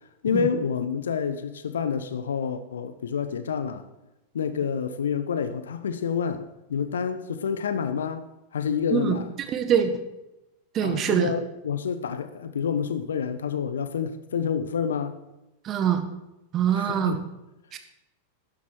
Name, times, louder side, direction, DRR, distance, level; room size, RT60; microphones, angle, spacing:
voice 1, 0.2-3.9 4.3-8.3 8.5-9.3 10.8-15.2 16.7-17.2, left 7 dB, 65° left, 0.8 m, -28 dB
voice 2, 9.5-9.9 10.7-11.3 15.6-16.0 16.5-17.2 17.7-17.8, right 9 dB, 30° right, 1.4 m, -23 dB
13.0 x 10.5 x 4.6 m
figure-of-eight pair, 90°, 0 cm